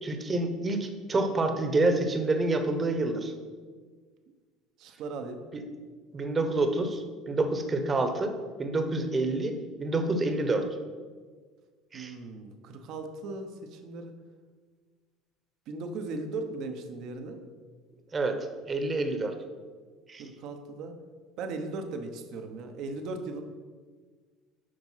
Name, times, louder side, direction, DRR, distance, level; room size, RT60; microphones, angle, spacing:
voice 1, 0.0-3.3 5.5-5.6 6.1-8.3 8.6-10.7 11.9-12.1 18.1-19.3 20.1-20.2, right 2 dB, 25° right, 6 dB, 1.1 m, -28 dB
voice 2, 4.8-5.4 11.9-14.1 15.7-17.4 20.2-21.0 21.4-23.4, right 3 dB, 60° right, 6 dB, 1.0 m, -38 dB
7.8 x 5.2 x 5.7 m, 1.5 s
supercardioid pair, 100°, 0 cm